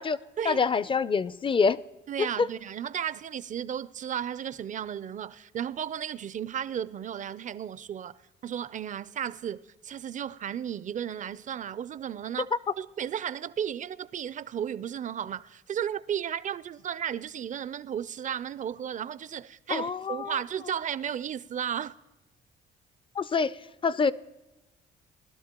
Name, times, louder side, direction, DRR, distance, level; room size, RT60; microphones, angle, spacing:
voice 1, 0.5-1.8 2.2-2.5 19.7-20.3 23.2-23.5 23.8-24.1, left 5 dB, 25° left, 0.4 m, -25 dB
voice 2, 2.1-21.9, right 9 dB, 40° right, 0.4 m, -34 dB
20.0 x 12.0 x 2.9 m
cardioid pair, 90°, 20 cm